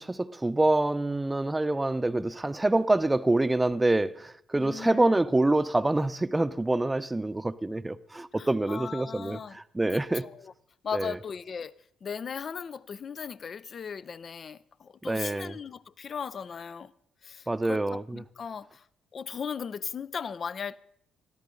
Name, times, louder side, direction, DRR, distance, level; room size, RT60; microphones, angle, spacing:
voice 1, 0.0-10.3 10.9-11.2 15.0-15.6 17.5-18.2, right 2 dB, 20° right, 0.7 m, -26 dB
voice 2, 4.6-5.2 8.4-9.6 9.9-10.5 10.8-16.9 17.2-18.9 19.1-20.8, left 6 dB, 50° left, 0.5 m, -37 dB
20.5 x 14.0 x 3.8 m
hypercardioid pair, 45°, 0 cm